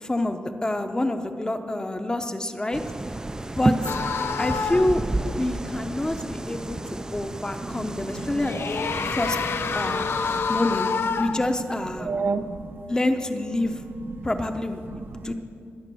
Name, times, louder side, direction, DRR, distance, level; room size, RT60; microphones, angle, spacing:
voice 1, 0.0-2.8 3.6-3.7 4.4-8.6 8.9-9.4 9.7-10.1 10.5-10.9 11.2-12.1 12.9-13.8 14.2-14.8 15.2-15.3, left 1 dB, 15° left, 6 dB, 0.8 m, -27 dB
sound 1, 2.7-10.4, right 2 dB, 15° right, 0.4 m, -31 dB
sound 2, 3.8-5.0 8.2-11.5, left 5 dB, 65° left, 0.6 m, -27 dB
voice 2, 7.6-8.8 9.9-10.1 10.4-10.5 12.0-12.8 14.1-14.2 14.9-15.3, right 4 dB, 55° right, 8 dB, 0.7 m, -32 dB
20.0 x 7.0 x 7.0 m, 2.4 s
wide cardioid pair, 140°, 4 cm